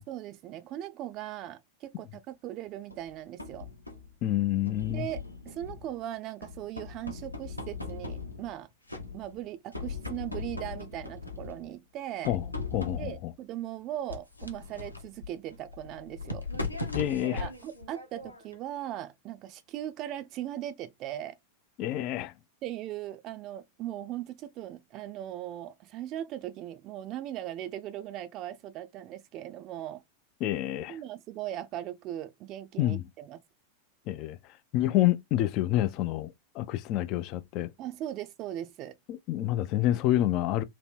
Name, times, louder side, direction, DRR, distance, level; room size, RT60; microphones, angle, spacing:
voice 1, 0.0-3.7 4.9-8.7 9.1-12.4 13.0-16.4 17.2-21.4 22.6-30.0 30.9-33.4 37.8-39.0, right 12 dB, 35° right, 0.5 m, -39 dB
sound 1, 2.9-4.1 4.7-6.0 6.4-8.6 8.9-9.4 9.7-11.7 12.2-13.3 14.1-18.6, left 3 dB, 85° left, 0.9 m, -39 dB
voice 2, 4.2-5.1 12.3-12.4 12.7-13.3 16.9-17.5 21.8-22.3 30.4-31.0 32.8-33.0 34.1-34.4 34.7-37.7 39.1-40.6, left 14 dB, 40° left, 0.4 m, -28 dB
3.0 x 2.8 x 4.3 m
figure-of-eight pair, 90°, 0 cm